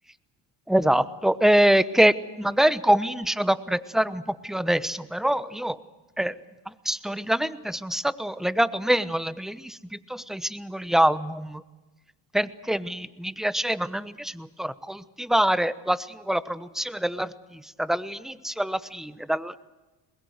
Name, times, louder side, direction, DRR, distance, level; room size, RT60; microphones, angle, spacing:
voice 1, 0.7-5.8 6.2-6.3 6.8-9.8 10.1-11.6 12.3-17.3 17.8-19.6, right 1 dB, ahead, 16 dB, 0.9 m, -25 dB
22.5 x 21.0 x 8.0 m, 1.2 s
supercardioid pair, 75°, 46 cm